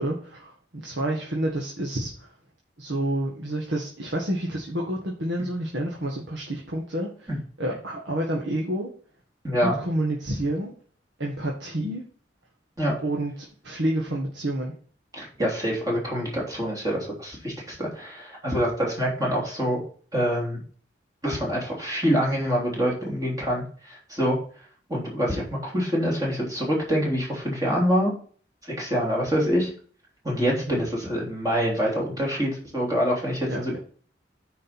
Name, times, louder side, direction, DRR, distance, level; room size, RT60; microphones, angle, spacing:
voice 1, 0.0-2.3 2.8-7.3 7.6-8.9 9.6-10.7 11.2-12.0 13.0-13.3 13.6-14.7 30.7-30.8 33.2-33.8, right 1 dB, 80° right, -1 dB, 1.6 m, -29 dB
voice 2, 9.4-9.8 12.8-13.0 15.1-19.8 20.1-20.6 21.2-24.4 24.9-28.1 28.8-29.7 30.2-33.8, equal, 20° right, -3 dB, 3.3 m, -25 dB
9.6 x 5.1 x 4.4 m, 0.44 s
head